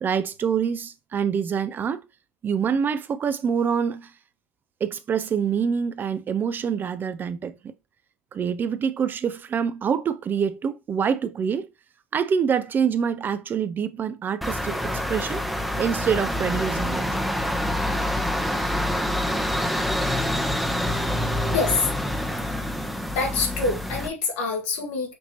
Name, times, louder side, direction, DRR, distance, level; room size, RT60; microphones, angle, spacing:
voice 1, 0.0-2.0 2.4-4.1 4.8-7.7 8.3-11.7 12.1-15.4 15.8-17.1, right 7 dB, 30° right, 0.4 m, -26 dB
sound 1, 14.4-24.1, left 1 dB, ahead, 0.7 m, -26 dB
voice 2, 21.5-22.1 23.1-25.1, left 4 dB, 65° left, 1.4 m, -26 dB
5.9 x 2.8 x 2.9 m
hypercardioid pair, 80°, 7 cm